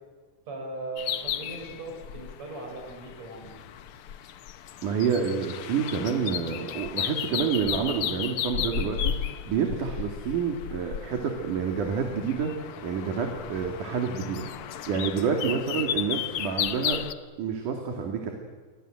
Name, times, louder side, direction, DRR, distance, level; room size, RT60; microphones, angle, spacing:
voice 1, 0.5-3.6, right 2 dB, 55° right, 3 dB, 7.6 m, -38 dB
sound 1, 1.0-17.1, left 10 dB, 65° left, 1.4 m, -34 dB
voice 2, 4.8-14.5 14.9-17.0 17.4-18.3, right 6 dB, 75° right, 3 dB, 4.0 m, -28 dB
29.0 x 24.0 x 7.8 m, 1.5 s
omnidirectional pair, 3.7 m